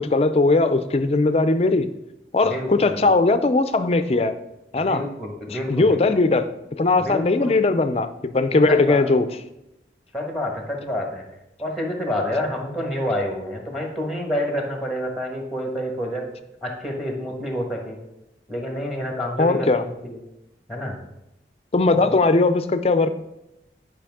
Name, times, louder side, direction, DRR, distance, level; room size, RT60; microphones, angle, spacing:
voice 1, 0.0-1.9 2.3-4.4 4.7-5.0 5.7-6.5 6.8-9.3 19.4-19.8 21.7-23.1, left 3 dB, 35° left, 10 dB, 0.4 m, -19 dB
voice 2, 2.4-3.0 4.9-6.0 7.0-7.5 8.7-9.0 10.1-11.2 11.6-16.2 16.6-18.0 18.5-20.2 20.7-21.0 21.9-22.1, left 1 dB, ahead, 1 dB, 1.4 m, -28 dB
10.0 x 5.3 x 3.6 m, 0.89 s
head